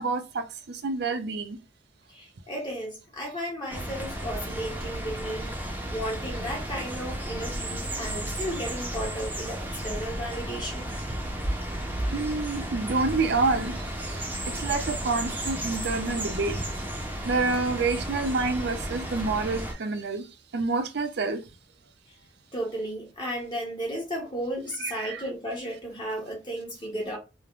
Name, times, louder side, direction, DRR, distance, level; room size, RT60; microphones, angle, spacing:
voice 1, 0.0-1.6 12.1-16.6 17.2-20.3 20.5-21.5 24.8-25.2, right 3 dB, 65° right, 0.5 m, -28 dB
voice 2, 2.1-5.6 5.9-10.9 22.5-27.2, equal, 25° left, 0.9 m, -34 dB
sound 1, 3.7-19.7, right 1 dB, 10° right, 0.6 m, -33 dB
3.2 x 2.1 x 2.4 m
head